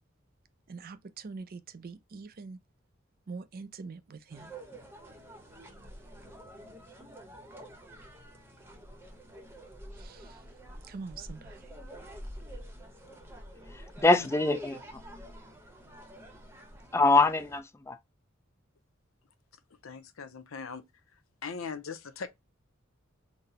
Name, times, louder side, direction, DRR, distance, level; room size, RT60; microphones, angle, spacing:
voice 1, 0.7-2.6 3.3-4.5 10.0-10.4 10.9-11.7, right 4 dB, 45° right, 0.4 m, -44 dB
sound 1, 4.3-17.6, right 1 dB, 10° right, 0.8 m, -48 dB
voice 2, 14.0-15.0 16.9-18.0, left 3 dB, 15° left, 0.3 m, -24 dB
voice 3, 19.8-20.8 21.4-22.3, left 5 dB, 85° left, 0.6 m, -40 dB
4.0 x 2.0 x 4.1 m
head